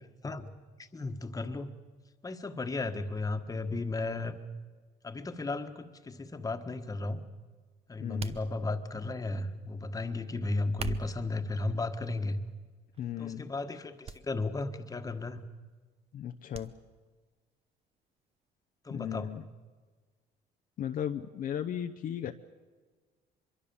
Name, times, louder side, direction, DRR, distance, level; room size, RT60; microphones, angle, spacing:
voice 1, 0.8-1.7 2.2-4.4 5.0-7.2 7.9-12.4 13.2-15.4 18.8-19.3, left 2 dB, 20° left, 7 dB, 1.5 m, -34 dB
voice 2, 8.0-8.4 13.0-13.5 16.1-16.7 18.9-19.4 20.8-22.3, left 9 dB, 55° left, 6 dB, 0.8 m, -36 dB
sound 1, 8.2-9.0 10.6-11.3 12.1-12.5 12.9-13.1 14.0-14.2 14.5-14.6 16.5-16.7 17.1-17.2, right 6 dB, 35° right, 1.0 m, -41 dB
24.0 x 23.0 x 7.1 m, 1.4 s
cardioid pair, 110°, 17 cm